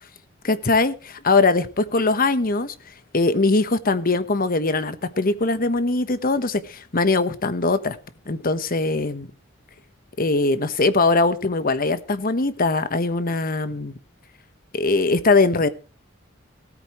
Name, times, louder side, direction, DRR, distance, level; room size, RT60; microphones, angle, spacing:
voice 1, 0.4-2.7 3.1-8.0 8.3-9.3 10.2-13.9 14.7-15.7, left 3 dB, 45° left, 1.1 m, -21 dB
17.5 x 13.5 x 3.1 m
head